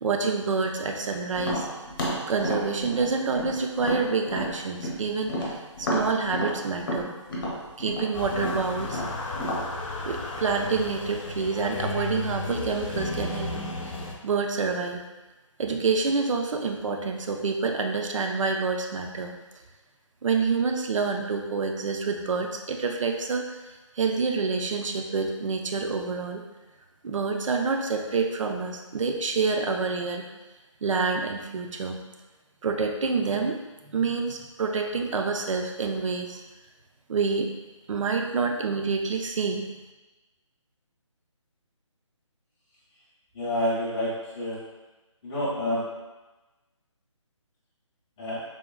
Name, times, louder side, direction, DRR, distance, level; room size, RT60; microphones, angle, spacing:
voice 1, 0.0-1.7 2.3-7.1 7.8-9.0 10.0-13.5 13.8-13.9 14.2-15.0 15.6-19.3 20.2-23.4 24.0-26.4 27.0-30.2 30.8-32.0 32.6-33.6 33.9-36.4 37.1-37.5 37.9-39.7, right 4 dB, 75° right, 3 dB, 0.4 m, -27 dB
Tap, 1.4-5.0 5.3-9.7, equal, 40° left, 0.8 m, -31 dB
sound 1, 8.1-14.1, left 3 dB, 80° left, 0.5 m, -34 dB
voice 2, 43.3-44.6 45.2-45.8 48.2-48.4, equal, 15° left, -12 dB, 0.5 m, -28 dB
3.6 x 2.1 x 2.2 m, 1.1 s
hypercardioid pair, 160°, 17 cm